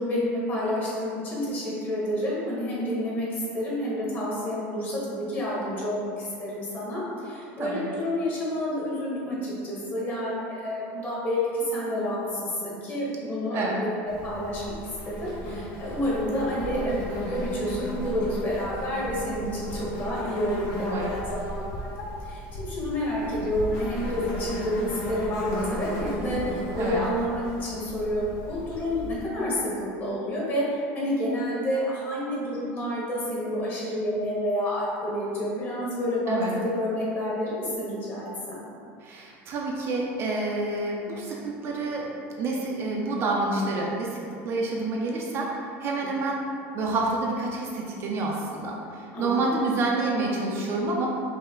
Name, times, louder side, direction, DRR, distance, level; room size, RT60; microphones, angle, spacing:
voice 1, 0.0-3.3 3.5-14.8 15.1-38.6 49.1-49.7, equal, 30° left, -6 dB, 1.2 m, -29 dB
Insect, 14.1-29.2, left 1 dB, 55° left, 0.9 m, -35 dB
voice 2, 20.8-21.1 26.7-27.0 36.3-36.5 39.0-42.1 42.4-44.2 44.4-46.4 46.7-51.1, right 2 dB, 40° right, -2 dB, 0.5 m, -28 dB
5.4 x 2.1 x 3.7 m, 2.5 s
cardioid pair, 150°, 7 cm